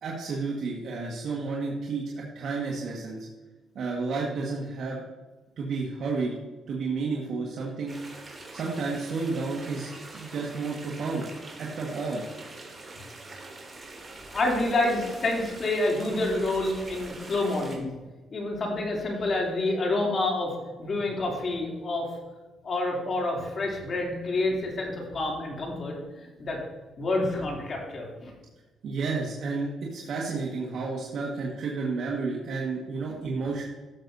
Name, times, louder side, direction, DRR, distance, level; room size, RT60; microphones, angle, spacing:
voice 1, 0.0-3.3 3.7-5.0 5.6-6.4 6.7-8.0 8.5-11.3 11.6-12.2 28.8-33.6, right 4 dB, 65° right, -3 dB, 1.5 m, -31 dB
sound 1, 7.9-17.8, right 2 dB, 25° right, 2.8 m, -44 dB
voice 2, 14.3-17.9 18.3-22.1 22.6-26.6 27.0-28.3, left 2 dB, 45° left, -1 dB, 2.8 m, -28 dB
13.5 x 6.8 x 2.7 m, 1.2 s
cardioid pair, 90°, 0 cm